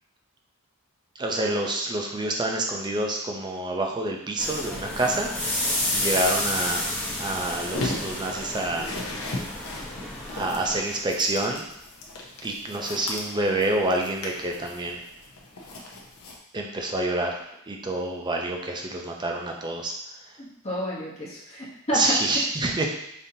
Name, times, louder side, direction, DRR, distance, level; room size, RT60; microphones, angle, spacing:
voice 1, 1.2-5.3 5.9-6.8 7.2-8.8 10.3-11.7 12.4-15.0 16.5-17.4 17.7-19.9 21.9-22.9, right 2 dB, 20° right, 1 dB, 0.5 m, -27 dB
sound 1, 4.4-10.8, left 1 dB, 5° left, 0.8 m, -30 dB
sound 2, 7.7-16.4, left 2 dB, 70° left, 0.7 m, -37 dB
voice 2, 20.4-22.4, equal, 30° left, -6 dB, 1.0 m, -30 dB
5.1 x 2.8 x 2.7 m, 0.77 s
head